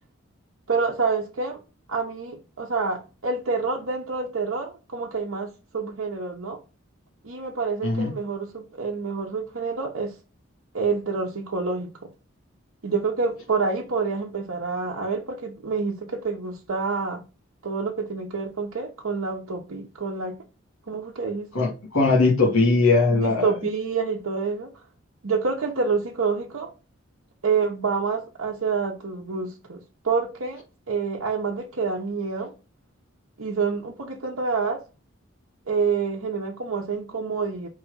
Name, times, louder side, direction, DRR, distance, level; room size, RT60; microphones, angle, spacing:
voice 1, 0.7-1.6 1.9-6.6 7.2-10.2 10.7-11.9 12.8-17.2 17.6-20.4 20.9-21.5 23.1-24.7 25.2-26.7 27.4-32.5 33.4-34.8 35.7-37.7, right 4 dB, 90° right, 1.0 m, -27 dB
voice 2, 21.5-23.5, left 3 dB, 90° left, 2.0 m, -20 dB
4.8 x 3.5 x 5.5 m
head